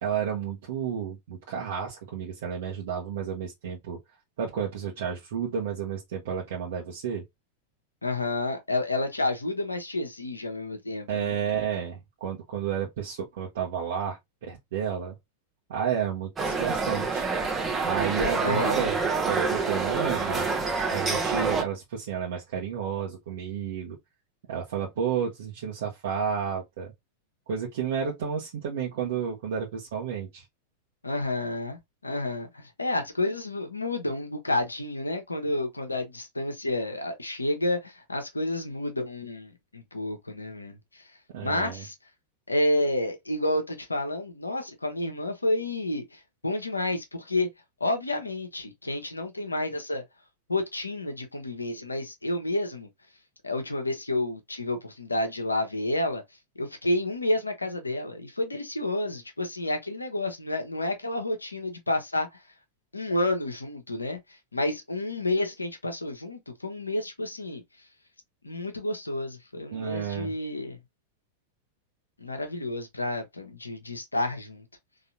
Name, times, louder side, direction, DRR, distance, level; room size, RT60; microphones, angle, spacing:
voice 1, 0.0-4.0 4.4-7.2 11.1-15.1 15.7-17.2 17.8-19.0 19.2-20.5 20.9-24.0 24.5-26.9 27.5-30.4 41.3-41.8 69.7-70.3, right 7 dB, 55° right, 1.2 m, -31 dB
voice 2, 8.0-11.4 18.4-18.9 31.0-41.0 41.4-41.9 42.5-47.5 47.8-50.0 50.5-52.9 53.4-56.2 56.5-62.4 62.9-64.2 64.5-67.6 68.4-70.8 72.2-74.6, left 2 dB, 80° left, 1.1 m, -30 dB
sound 1, 16.4-21.6, right 4 dB, 20° right, 1.2 m, -27 dB
4.0 x 3.2 x 2.8 m
figure-of-eight pair, 90°, 0 cm